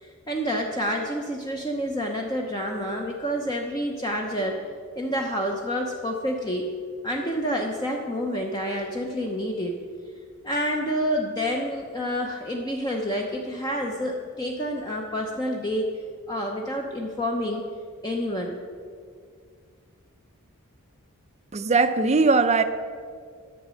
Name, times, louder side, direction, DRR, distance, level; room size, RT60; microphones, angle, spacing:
voice 1, 0.0-4.6 5.0-6.7 7.0-9.8 10.4-15.8 16.3-17.6 18.0-18.6, equal, 20° left, 0 dB, 0.7 m, -28 dB
voice 2, 21.5-22.6, right 4 dB, 30° right, 10 dB, 0.5 m, -20 dB
10.0 x 7.5 x 6.2 m, 2.1 s
head